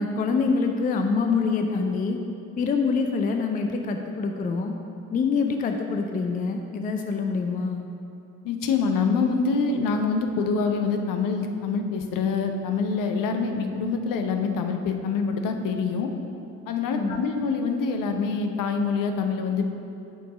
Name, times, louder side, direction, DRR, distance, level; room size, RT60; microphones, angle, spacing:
voice 1, 0.0-2.2 2.6-4.7 5.1-7.9 16.9-17.2, left 4 dB, 20° left, 4 dB, 0.4 m, -25 dB
voice 2, 8.4-16.1 16.7-19.7, left 5 dB, 50° left, 5 dB, 0.7 m, -25 dB
6.4 x 4.6 x 4.9 m, 2.7 s
figure-of-eight pair, 50°, 43 cm